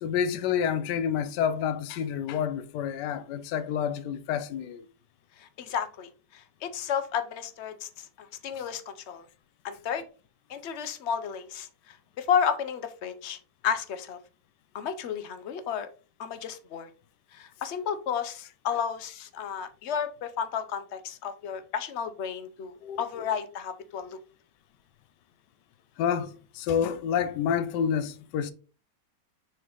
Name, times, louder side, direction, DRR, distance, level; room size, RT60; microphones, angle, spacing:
voice 1, 0.0-4.9 22.8-23.2 26.0-28.5, left 8 dB, 75° left, 1.2 m, -29 dB
voice 2, 5.4-9.2 9.6-10.0 10.5-13.4 13.6-14.2 14.7-15.9 16.2-16.9 17.3-24.2, left 7 dB, 55° left, 0.8 m, -32 dB
6.3 x 4.7 x 3.9 m
omnidirectional pair, 2.0 m